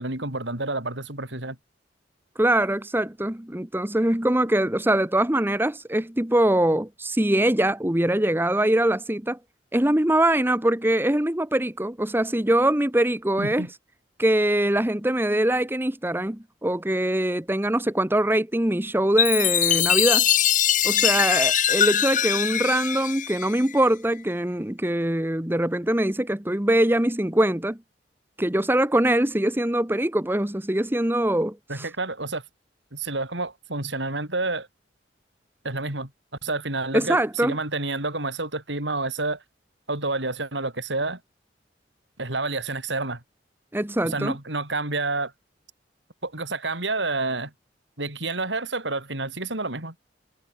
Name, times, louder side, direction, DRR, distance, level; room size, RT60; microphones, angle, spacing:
voice 1, 0.0-1.6 13.4-13.7 31.7-32.4 32.9-34.7 35.6-36.1 36.4-39.4 39.9-41.2 42.2-43.2 44.0-45.3 46.2-47.5 48.0-49.9, right 2 dB, 80° right, 6.5 m, -29 dB
voice 2, 2.4-9.4 9.7-13.7 14.2-20.3 20.8-27.8 28.4-31.9 36.9-37.5 43.7-44.3, right 1 dB, 10° right, 1.1 m, -23 dB
Chime, 19.2-23.9, left 10 dB, 45° left, 1.7 m, -22 dB
head